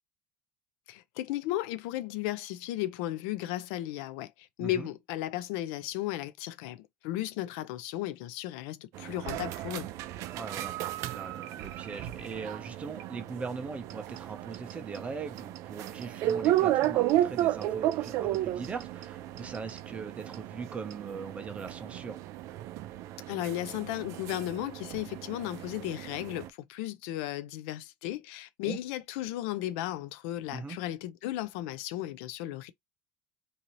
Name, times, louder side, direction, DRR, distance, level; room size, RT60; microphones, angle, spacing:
voice 1, 0.9-9.9 23.3-32.7, left 14 dB, 90° left, 0.4 m, -35 dB
sound 1, 8.9-26.5, right 13 dB, 60° right, 0.4 m, -33 dB
voice 2, 10.3-22.2 28.6-28.8 30.5-30.8, right 5 dB, 20° right, 0.7 m, -40 dB
2.7 x 2.6 x 3.0 m
cardioid pair, 145°, 6 cm